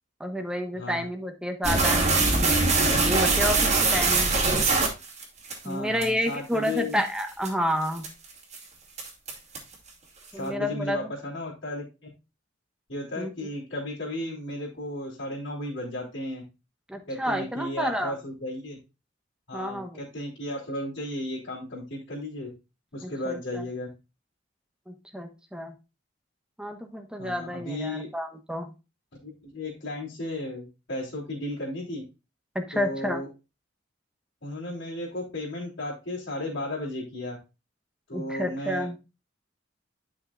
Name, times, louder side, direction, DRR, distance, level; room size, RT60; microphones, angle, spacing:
voice 1, 0.2-2.6 3.0-4.5 5.6-8.1 10.3-11.1 13.2-13.3 16.9-18.1 19.5-20.0 23.0-23.6 24.9-25.7 26.6-28.7 32.5-33.2 38.1-39.0, equal, 5° right, 4 dB, 1.2 m, -30 dB
voice 2, 0.7-1.1 5.6-7.0 10.3-11.9 12.9-16.4 17.1-18.8 19.5-22.5 22.9-23.9 27.2-28.1 29.2-32.0 32.7-33.3 34.4-37.4 38.1-38.9, left 1 dB, 65° left, -9 dB, 3.4 m, -34 dB
sound 1, 1.6-5.5 6.0-6.1 6.7-6.8 7.2-7.5 8.0-8.3 8.5-8.6 9.0-9.7, right 3 dB, 35° right, 2.4 m, -22 dB
11.5 x 5.9 x 2.5 m, 0.28 s
head